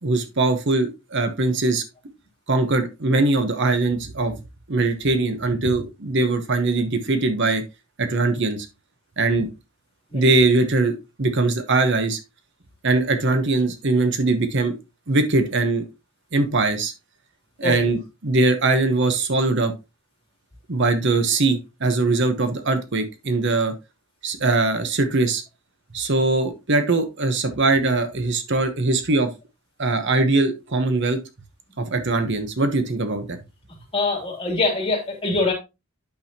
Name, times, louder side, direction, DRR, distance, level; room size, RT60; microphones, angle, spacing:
voice 1, 0.0-1.8 2.5-4.4 4.7-7.6 8.0-8.7 9.2-9.5 10.1-12.2 12.8-14.7 15.1-15.8 16.3-16.9 17.6-19.7 20.7-23.7 24.2-25.4 25.9-29.3 29.8-31.2 31.8-33.4, right 3 dB, 55° right, 8 dB, 1.0 m, -21 dB
voice 2, 33.9-35.5, left 3 dB, 25° left, -1 dB, 2.9 m, -23 dB
8.7 x 6.2 x 2.9 m, 0.25 s
head